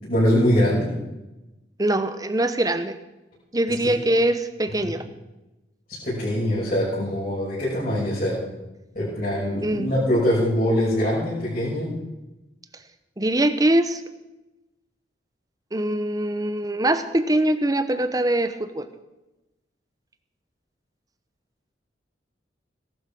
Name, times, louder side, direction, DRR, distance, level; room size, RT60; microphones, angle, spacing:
voice 1, 0.0-0.9 3.8-3.9 4.8-4.9 6.0-8.4 8.9-12.0, equal, 45° left, -8 dB, 6.1 m, -23 dB
voice 2, 1.8-2.9 3.5-5.0 9.6-9.9 13.2-14.0 15.7-18.9, right 1 dB, 20° right, 10 dB, 1.0 m, -23 dB
18.0 x 12.0 x 6.1 m, 1.0 s
head